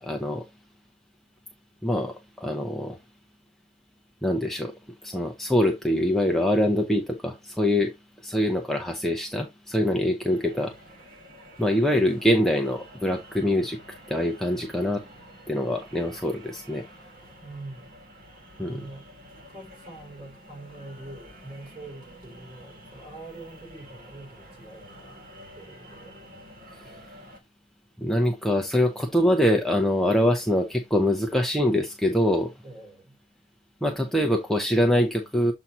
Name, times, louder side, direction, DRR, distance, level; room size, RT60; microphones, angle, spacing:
voice 1, 0.0-0.5 1.8-3.0 4.2-4.7 5.0-7.9 8.2-10.7 11.6-15.0 15.5-16.9 18.6-18.9 26.7-27.0 28.0-32.5 33.8-35.5, left 1 dB, ahead, 0.6 m, -24 dB
sound 1, 10.2-27.4, equal, 50° right, 2.1 m, -49 dB
voice 2, 17.4-17.9 18.6-19.1 19.5-25.2 25.5-27.0 32.6-33.2, right 2 dB, 30° right, 4.1 m, -44 dB
7.4 x 2.7 x 5.4 m
head